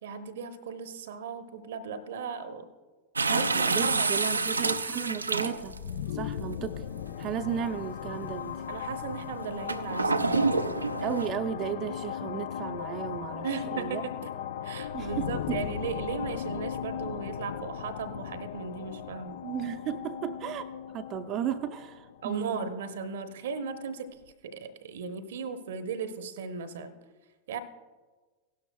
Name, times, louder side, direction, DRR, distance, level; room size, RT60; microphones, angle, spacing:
voice 1, 0.0-2.7 3.3-4.7 8.7-10.6 13.4-14.3 14.6-19.4 22.2-24.1 24.4-26.9 27.5-27.6, right 5 dB, 60° right, 10 dB, 0.8 m, -37 dB
sound 1, 3.1-5.9 6.8-6.9 9.7-11.3, right 3 dB, 80° right, 0.5 m, -27 dB
voice 2, 3.3-5.8 6.1-6.7 7.2-8.6 11.0-14.0 14.9-15.6 19.4-22.7, right 9 dB, 35° right, 8 dB, 0.6 m, -34 dB
sound 2, 5.6-23.2, left 9 dB, 55° left, 0.4 m, -37 dB
17.0 x 12.0 x 2.2 m, 1.3 s
figure-of-eight pair, 90°, 0 cm